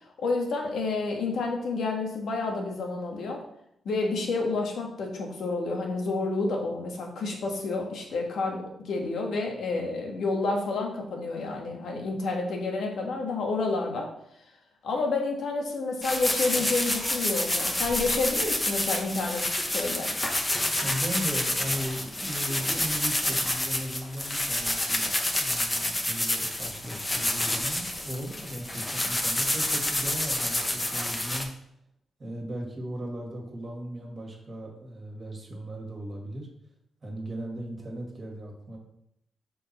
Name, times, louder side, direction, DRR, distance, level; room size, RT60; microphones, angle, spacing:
voice 1, 0.2-3.4 3.8-14.1 14.8-20.1, left 3 dB, 75° left, 1 dB, 1.5 m, -29 dB
sound 1, 16.0-31.4, left 1 dB, 15° left, 1.0 m, -28 dB
voice 2, 20.8-31.5 32.2-36.5 37.0-38.8, equal, 35° right, -1 dB, 2.0 m, -37 dB
6.1 x 5.4 x 4.3 m, 0.75 s
cardioid pair, 110°, 0 cm